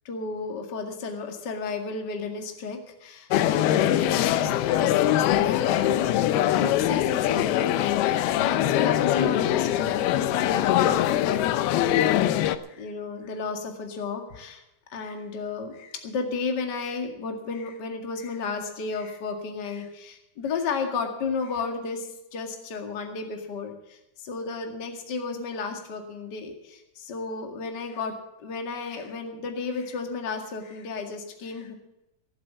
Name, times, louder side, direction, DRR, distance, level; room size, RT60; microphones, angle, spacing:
voice 1, 0.0-14.6 14.9-28.1 28.4-31.7, left 4 dB, 35° left, 4 dB, 2.0 m, -33 dB
sound 1, 3.3-12.6, left 12 dB, 90° left, 2.7 m, -23 dB
19.0 x 7.6 x 7.4 m, 0.90 s
omnidirectional pair, 4.3 m